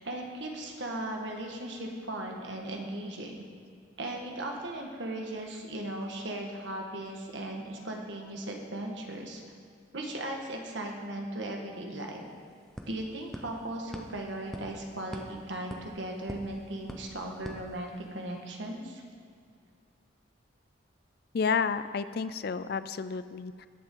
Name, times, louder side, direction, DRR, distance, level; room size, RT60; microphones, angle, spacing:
voice 1, 0.0-3.4 4.0-9.4 9.9-12.2 12.9-19.0, right 1 dB, 65° right, 1 dB, 1.5 m, -37 dB
sound 1, 11.6-11.7 12.0-18.4, equal, ahead, 0.7 m, -46 dB
voice 2, 21.3-23.7, left 5 dB, 50° left, 13 dB, 0.4 m, -31 dB
20.0 x 7.1 x 3.8 m, 2.2 s
head